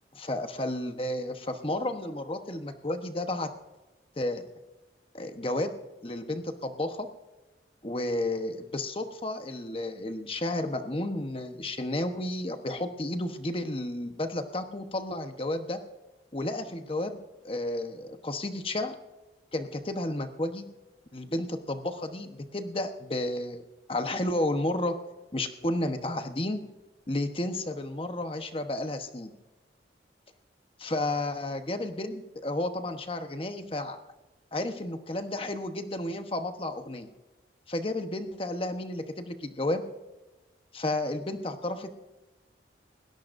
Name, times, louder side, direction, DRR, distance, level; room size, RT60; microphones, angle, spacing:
voice 1, 0.1-3.5 4.2-4.4 5.1-5.7 6.0-7.1 7.8-15.8 16.3-18.9 19.5-20.6 21.1-23.6 23.9-24.9 25.3-26.6 27.1-29.3 30.8-34.0 34.5-37.1 37.7-39.8 40.7-41.9, left 1 dB, 30° left, 7 dB, 1.1 m, -32 dB
20.5 x 17.5 x 2.6 m, 1.1 s
head